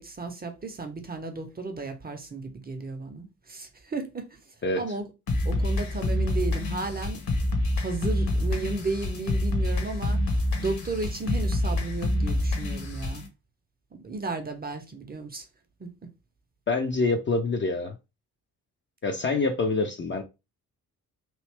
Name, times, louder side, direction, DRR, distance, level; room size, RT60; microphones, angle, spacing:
voice 1, 0.0-4.4 4.8-5.1 5.4-7.2 7.8-10.3 10.6-13.3 14.0-15.4 15.8-16.1, right 3 dB, 20° right, 0.7 m, -34 dB
sound 1, 5.3-13.3, left 1 dB, 45° left, 1.1 m, -27 dB
voice 2, 16.7-18.0 19.0-20.2, left 3 dB, 25° left, 0.6 m, -26 dB
3.1 x 2.7 x 3.3 m
figure-of-eight pair, 40°, 47 cm